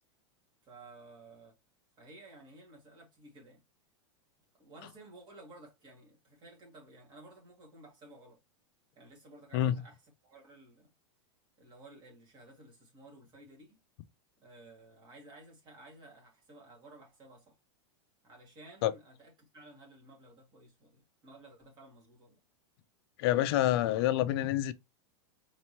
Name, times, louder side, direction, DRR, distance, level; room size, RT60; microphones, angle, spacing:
voice 1, 0.6-1.6 2.0-3.6 4.6-8.4 9.0-10.9 11.6-13.8 14.4-17.6 18.2-22.4, right 2 dB, 30° right, 2.1 m, -55 dB
voice 2, 23.2-24.7, left 13 dB, 55° left, 0.5 m, -27 dB
4.3 x 3.0 x 2.8 m
supercardioid pair, 145°, 16 cm